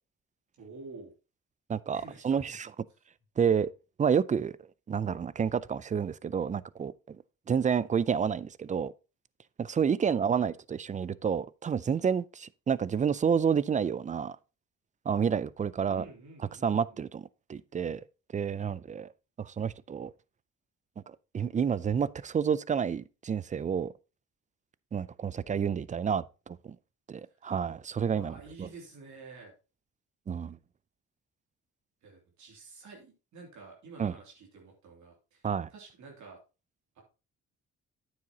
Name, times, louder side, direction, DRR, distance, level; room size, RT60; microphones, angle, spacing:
voice 1, 0.6-1.1 1.9-2.6 10.0-10.6 15.8-16.9 28.1-29.5 32.0-35.4 35.7-36.4 36.9-37.0, right 4 dB, 70° right, 2.9 m, -49 dB
voice 2, 1.7-2.7 3.4-3.7 4.0-4.6 4.9-7.2 7.5-8.9 9.6-14.4 15.1-16.0 16.6-18.0 18.3-19.1 19.4-20.1 21.0-23.9 24.9-26.8 27.1-28.7 30.3-30.6 34.0-34.1 35.4-35.7, right 7 dB, 25° right, 0.4 m, -29 dB
9.4 x 7.7 x 2.9 m
cardioid pair, 90°, 30 cm